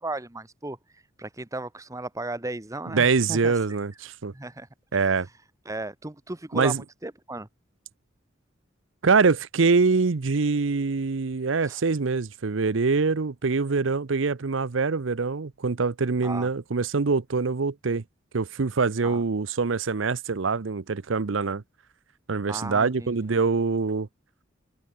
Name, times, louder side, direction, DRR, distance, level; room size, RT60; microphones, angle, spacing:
voice 1, 0.0-3.5 4.3-5.3 5.6-7.5 11.6-11.8 16.2-16.5 19.0-19.2 22.5-23.3, right 2 dB, 15° right, 1.2 m, -36 dB
voice 2, 2.9-4.3 4.9-5.3 6.5-6.8 9.0-18.0 18.3-21.6 22.3-24.1, right 4 dB, 75° right, 0.7 m, -24 dB
head